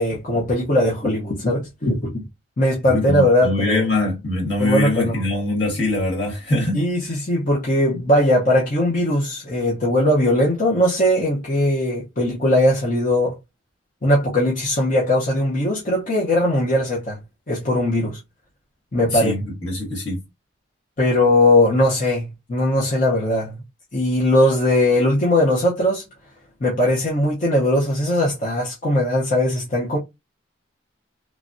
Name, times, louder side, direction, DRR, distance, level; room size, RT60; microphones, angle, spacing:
voice 1, 0.0-2.2 2.6-3.8 4.6-5.3 6.7-13.4 14.0-17.2 17.5-18.2 18.9-19.3 21.0-23.6 23.9-26.0 26.6-30.0, left 1 dB, 45° left, 0.8 m, -19 dB
voice 2, 2.9-6.8 19.1-20.2, left 2 dB, 65° left, 1.9 m, -23 dB
3.1 x 2.4 x 2.5 m
head